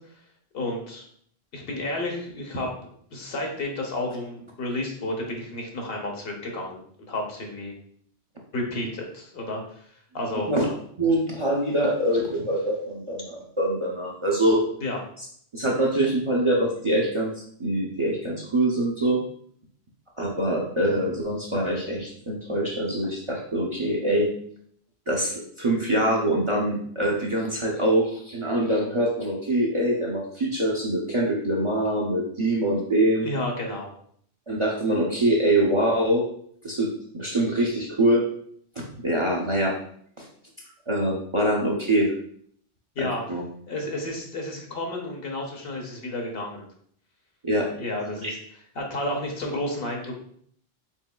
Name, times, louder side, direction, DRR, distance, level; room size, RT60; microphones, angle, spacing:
voice 1, 0.5-1.1 1.5-2.7 3.1-7.7 8.5-9.8 10.1-10.5 14.8-15.0 33.2-33.9 43.0-43.2 43.7-46.7 47.7-48.4 48.7-50.2, left 1 dB, 65° left, 1 dB, 1.0 m, -31 dB
voice 2, 11.0-14.6 15.5-17.3 17.6-19.2 20.2-24.3 25.1-33.3 34.5-36.2 36.6-36.9 37.1-38.2 39.0-39.7 40.2-40.3 40.9-42.1 43.0-43.4 47.4-47.7 48.2-48.3, right 1 dB, 35° right, -2 dB, 0.5 m, -24 dB
4.4 x 3.6 x 2.3 m, 0.63 s
omnidirectional pair, 1.1 m